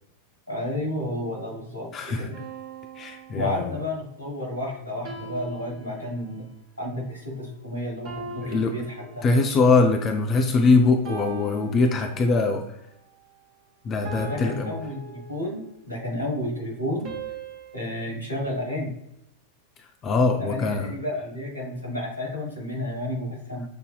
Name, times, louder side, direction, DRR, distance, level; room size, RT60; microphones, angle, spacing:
voice 1, 0.5-2.4 3.3-6.5 6.8-9.2 14.2-17.1 17.7-18.9 20.4-23.6, left 1 dB, 85° left, -3 dB, 1.3 m, -31 dB
voice 2, 1.9-2.3 3.0-3.7 8.4-8.7 9.2-12.6 13.8-14.7 20.0-20.9, left 3 dB, 30° left, 4 dB, 0.4 m, -22 dB
sound 1, 2.3-4.0 5.0-6.6 8.0-9.7 11.0-12.6 14.0-15.8 17.0-18.1, right 4 dB, 35° right, 1.0 m, -41 dB
6.8 x 2.7 x 2.3 m, 0.79 s
figure-of-eight pair, 90°, 0 cm